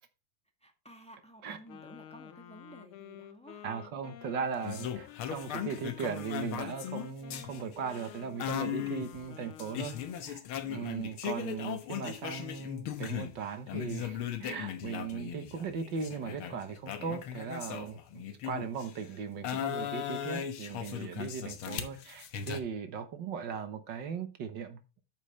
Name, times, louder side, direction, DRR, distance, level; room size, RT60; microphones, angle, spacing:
voice 1, 0.6-3.7, right 1 dB, 5° left, 0.5 m, -53 dB
Wind instrument woodwind instrument, 1.7-10.3, left 10 dB, 80° left, 1.2 m, -51 dB
voice 2, 3.6-24.8, right 6 dB, 75° right, 1.0 m, -38 dB
sound 1, 4.6-13.4 13.7-19.0 19.4-22.6, left 9 dB, 65° left, 1.4 m, -38 dB
9.1 x 7.7 x 3.2 m
omnidirectional pair, 3.6 m